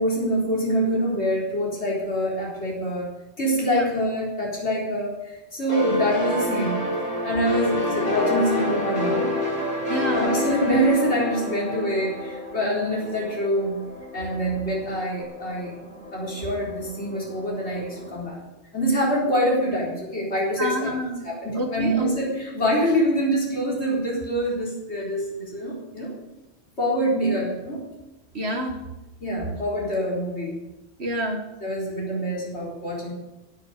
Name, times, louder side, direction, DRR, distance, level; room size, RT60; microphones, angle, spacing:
voice 1, 0.0-3.1 3.4-6.8 7.2-9.3 10.1-13.8 14.1-15.7 16.1-18.4 18.7-20.9 21.2-26.1 26.8-27.8 29.2-30.6 31.6-33.1, equal, 85° left, -5 dB, 4.5 m, -25 dB
sound 1, 5.7-13.2, left 1 dB, 40° left, 6.8 m, -26 dB
voice 2, 9.9-10.3 20.6-21.3 21.5-22.1 28.3-28.8 31.0-31.4, equal, 75° right, 2 dB, 2.6 m, -28 dB
sound 2, 11.7-18.2, left 1 dB, 5° left, 4.7 m, -43 dB
17.0 x 9.9 x 6.9 m, 1.0 s
omnidirectional pair, 1.1 m